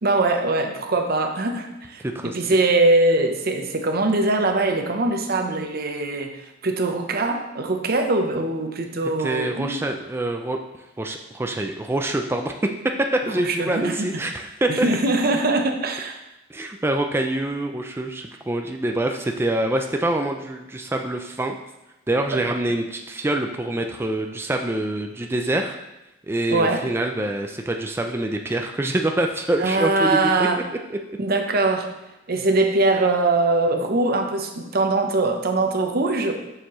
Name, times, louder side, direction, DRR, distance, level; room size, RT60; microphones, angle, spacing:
voice 1, 0.0-9.8 13.4-14.1 14.7-16.2 22.3-22.4 26.5-26.9 29.6-30.6 31.2-31.9 32.3-36.3, right 2 dB, 55° right, 4 dB, 0.8 m, -22 dB
voice 2, 2.0-2.4 9.2-10.6 11.0-12.6 13.0-14.9 16.5-21.6 22.1-25.8 26.3-30.5 30.9-31.0, right 1 dB, 15° right, 4 dB, 0.4 m, -25 dB
7.1 x 6.6 x 3.1 m, 0.95 s
head